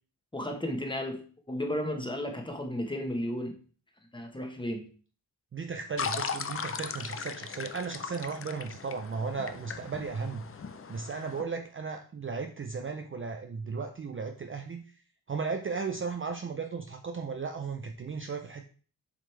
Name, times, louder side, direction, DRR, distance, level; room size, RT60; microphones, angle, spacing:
voice 1, 0.3-3.6 4.1-4.9, left 1 dB, 10° left, 3 dB, 1.1 m, -34 dB
voice 2, 5.5-10.4 10.9-14.8 15.3-18.7, right 5 dB, 35° right, 5 dB, 0.5 m, -35 dB
sound 1, 6.0-11.4, left 6 dB, 35° left, 0.5 m, -38 dB
7.5 x 5.1 x 3.3 m, 0.41 s
wide cardioid pair, 145°, 39 cm